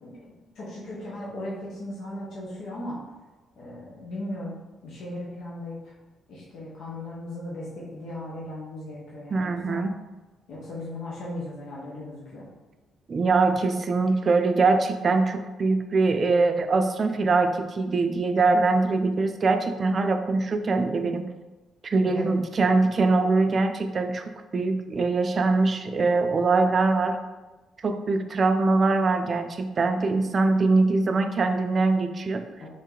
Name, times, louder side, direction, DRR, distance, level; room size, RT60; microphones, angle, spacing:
voice 1, 0.0-3.0 3.6-5.9 6.3-9.8 10.5-12.5 22.0-22.4 32.6-32.7, left 1 dB, 70° left, -6 dB, 1.0 m, -37 dB
voice 2, 9.3-10.0 13.1-21.3 21.8-27.2 27.8-32.5, right 3 dB, 40° right, 7 dB, 0.4 m, -23 dB
3.6 x 2.7 x 3.7 m, 1.2 s
cardioid pair, 90°, 0 cm